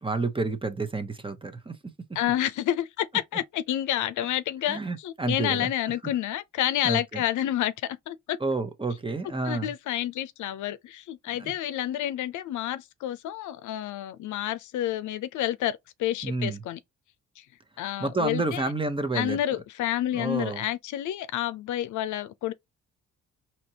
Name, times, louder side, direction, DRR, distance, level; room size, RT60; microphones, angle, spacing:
voice 1, 0.0-1.8 4.7-5.7 6.8-7.2 8.4-9.7 11.4-11.5 16.2-16.6 18.0-19.4 20.1-20.6, right 3 dB, 15° right, 0.9 m, -29 dB
voice 2, 2.1-8.4 9.4-16.8 17.4-17.5 17.8-18.6 19.1-22.5, left 12 dB, 75° left, 0.6 m, -29 dB
4.3 x 2.9 x 2.8 m
cardioid pair, 90°, 30 cm